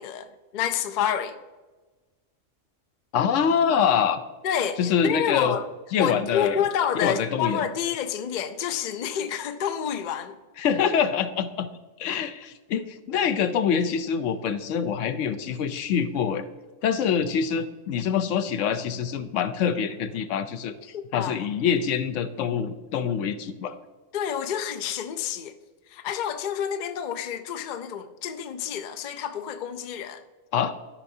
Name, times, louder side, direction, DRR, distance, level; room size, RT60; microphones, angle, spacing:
voice 1, 0.0-1.4 4.4-5.6 6.0-10.4 20.9-21.4 24.1-25.5 25.9-30.2, left 8 dB, 60° left, 0.5 m, -29 dB
voice 2, 3.1-4.2 4.8-5.6 5.9-6.6 7.0-7.6 10.6-11.7 12.0-16.4 16.8-20.7 21.1-23.7 30.5-30.7, left 7 dB, 75° left, 0.9 m, -25 dB
12.5 x 5.6 x 2.7 m
omnidirectional pair, 1.3 m